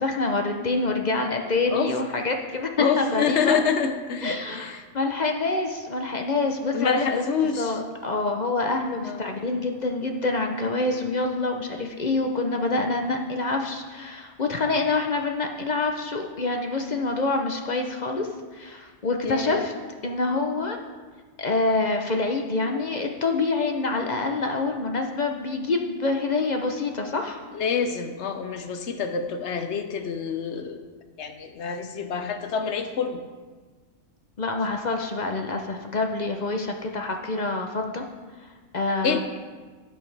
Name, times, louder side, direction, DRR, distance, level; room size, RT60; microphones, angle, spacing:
voice 1, 0.0-3.6 4.2-7.2 7.6-19.7 20.0-20.8 21.4-27.4 34.4-38.0 38.4-39.2, left 3 dB, 40° left, 3 dB, 0.7 m, -26 dB
voice 2, 2.8-4.8 6.7-7.8 9.0-9.2 19.2-19.7 27.5-30.8 31.2-33.2 39.0-39.2, left 6 dB, 60° left, 7 dB, 1.0 m, -27 dB
15.0 x 6.2 x 3.3 m, 1.4 s
omnidirectional pair, 1.3 m